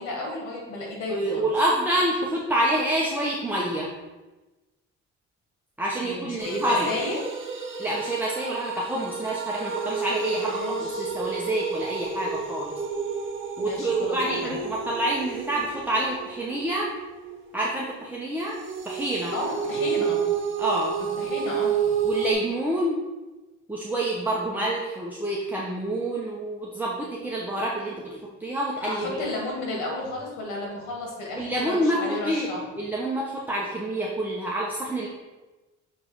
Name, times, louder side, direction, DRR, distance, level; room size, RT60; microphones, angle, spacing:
voice 1, 0.0-1.5 6.0-7.2 10.3-11.1 13.6-14.6 19.3-20.3 21.2-22.0 28.8-32.6, left 2 dB, 85° left, -1 dB, 2.0 m, -33 dB
voice 2, 1.1-3.9 5.8-6.9 7.8-12.7 13.6-16.9 17.5-18.6 18.8-19.3 20.6-20.9 22.0-23.0 23.7-29.2 31.4-32.5 32.8-35.1, right 1 dB, 5° right, -5 dB, 1.0 m, -27 dB
sound 1, 6.4-17.9 18.5-22.3, right 6 dB, 40° right, 1.0 m, -30 dB
6.4 x 3.7 x 4.7 m, 1.1 s
cardioid pair, 90°, 30 cm